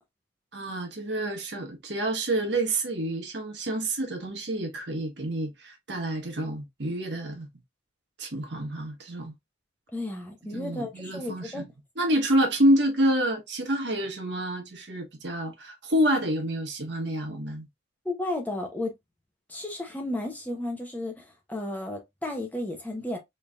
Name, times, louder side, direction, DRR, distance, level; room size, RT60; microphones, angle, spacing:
voice 1, 0.5-7.5 8.2-9.3 10.5-11.6 12.0-17.7, right 1 dB, 65° right, 1.2 m, -28 dB
voice 2, 9.9-11.6 18.0-18.9 19.5-23.2, left 1 dB, 10° left, 0.6 m, -33 dB
3.9 x 3.2 x 2.3 m
head